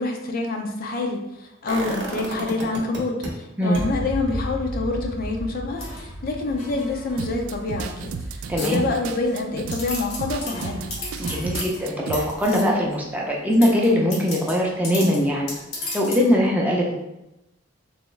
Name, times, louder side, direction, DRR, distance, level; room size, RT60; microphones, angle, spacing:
voice 1, 0.0-10.9, left 3 dB, 45° left, 2 dB, 0.5 m, -27 dB
sound 1, 1.7-3.3 3.7-9.6 9.9-10.0, right 1 dB, 60° right, 0.8 m, -33 dB
sound 2, 5.8-7.3 7.8-8.2 8.6-9.3 9.7-12.9 13.5-16.3, left 2 dB, 85° left, 1.3 m, -36 dB
sound 3, 7.2-12.2, right 4 dB, 85° right, 0.3 m, -33 dB
voice 2, 8.5-8.8 11.2-15.5 15.9-16.9, equal, 5° right, -3 dB, 0.5 m, -21 dB
3.4 x 3.0 x 3.1 m, 0.92 s
head